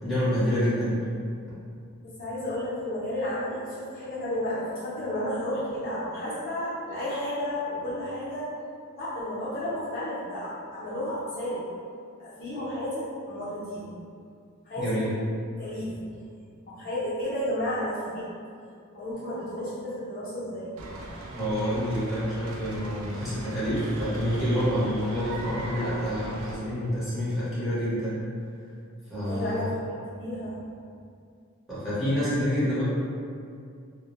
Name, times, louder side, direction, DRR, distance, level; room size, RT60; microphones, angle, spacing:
voice 1, 0.0-1.0 14.8-15.1 21.3-28.2 29.1-29.7 31.7-32.8, equal, ahead, -13 dB, 0.8 m, -27 dB
voice 2, 2.0-8.5 8.9-11.6 12.2-13.9 14.6-15.1 15.6-16.0 16.7-18.3 18.9-20.7 29.2-29.6 30.2-30.6, left 1 dB, 45° left, -11 dB, 0.6 m, -32 dB
sound 1, 20.8-26.6, right 1 dB, 80° right, 0.4 m, -38 dB
2.1 x 2.0 x 2.9 m, 2.3 s
head